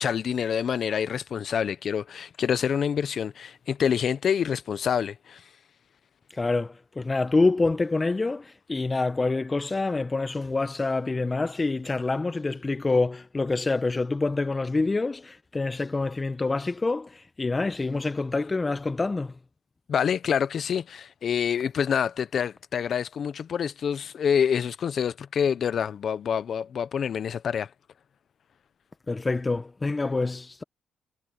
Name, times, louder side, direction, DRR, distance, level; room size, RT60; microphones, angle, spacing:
voice 1, 0.0-5.5 19.9-27.7, left 7 dB, 55° left, 0.8 m, -27 dB
voice 2, 6.4-19.3 29.1-30.6, left 3 dB, 25° left, 0.9 m, -26 dB
cardioid pair, 90°, 0 cm